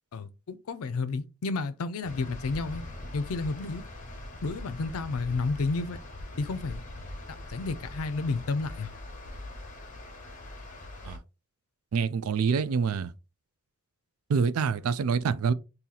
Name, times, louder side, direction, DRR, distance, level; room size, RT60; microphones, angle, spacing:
voice 1, 0.1-2.8 3.1-3.8 4.4-6.0 6.4-6.8 7.3-8.9, left 3 dB, 80° left, 0.5 m, -31 dB
sound 1, 2.0-11.2, left 1 dB, 40° left, 0.9 m, -42 dB
voice 2, 11.9-13.1 14.3-15.5, right 5 dB, 85° right, 0.4 m, -26 dB
2.8 x 2.7 x 3.9 m
head